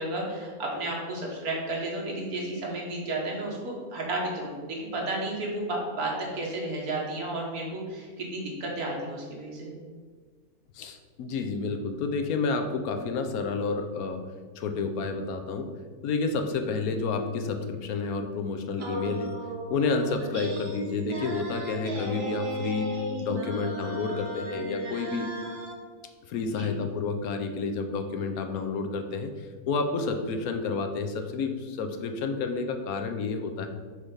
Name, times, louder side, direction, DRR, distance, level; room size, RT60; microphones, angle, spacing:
voice 1, 0.0-9.7 26.6-26.7, right 2 dB, 75° right, -2 dB, 1.9 m, -32 dB
voice 2, 10.7-14.2 14.6-15.7 16.0-19.3 19.7-25.3 26.3-33.7, left 4 dB, 75° left, 6 dB, 1.1 m, -30 dB
sound 1, 18.8-25.8, right 1 dB, 50° right, 1.0 m, -35 dB
6.1 x 3.4 x 5.6 m, 1.5 s
omnidirectional pair, 1.6 m